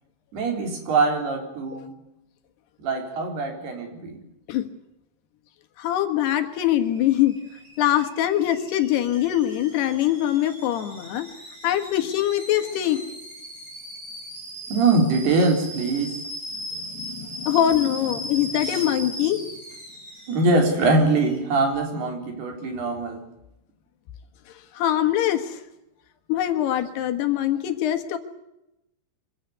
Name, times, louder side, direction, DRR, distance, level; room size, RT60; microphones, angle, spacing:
voice 1, 0.3-1.9 2.8-4.2 14.7-16.1 18.7-18.8 20.3-23.2, right 3 dB, 75° right, 3 dB, 5.7 m, -23 dB
voice 2, 5.8-7.3 7.8-11.3 11.6-13.0 16.7-19.5 24.8-25.6 26.3-28.2, left 12 dB, 80° left, 6 dB, 3.6 m, -23 dB
Alarm / Boiling, 6.5-21.4, right 1 dB, 15° right, 6.4 m, -39 dB
25.0 x 15.5 x 9.5 m, 0.89 s
omnidirectional pair, 4.7 m